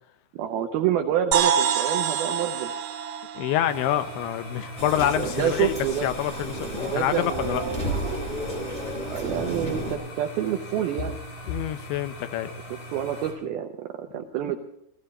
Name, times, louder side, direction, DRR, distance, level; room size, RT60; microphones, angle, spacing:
voice 1, 0.3-2.7 5.2-6.1 6.6-7.9 9.1-11.2 12.9-14.6, right 10 dB, 85° right, 6 dB, 2.1 m, -28 dB
sound 1, 1.3-5.1, right 8 dB, 65° right, 2.6 m, -27 dB
voice 2, 3.4-5.7 6.0-7.6 11.5-12.5, left 11 dB, 80° left, 11 dB, 3.0 m, -27 dB
sound 2, 3.7-13.3, left 1 dB, 45° left, 4.9 m, -40 dB
sound 3, 4.8-9.9, right 1 dB, 10° left, 2.3 m, -32 dB
19.5 x 15.0 x 4.2 m, 0.84 s
omnidirectional pair, 5.6 m